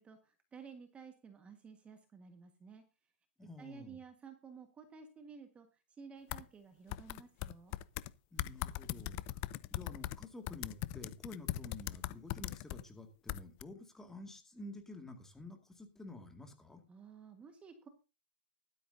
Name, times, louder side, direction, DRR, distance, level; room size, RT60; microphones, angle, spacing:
voice 1, 0.0-2.8 3.4-7.8 16.9-17.9, right 6 dB, 20° right, 6 dB, 1.5 m, -54 dB
voice 2, 3.4-4.0 8.3-9.4 9.7-16.8, left 2 dB, 5° left, 5 dB, 2.1 m, -50 dB
sound 1, 6.3-6.4 6.9-8.1 8.4-12.8 13.3-13.6, left 17 dB, 40° left, 0.6 m, -39 dB
15.5 x 12.0 x 2.7 m, 0.31 s
hypercardioid pair, 130°, 6 cm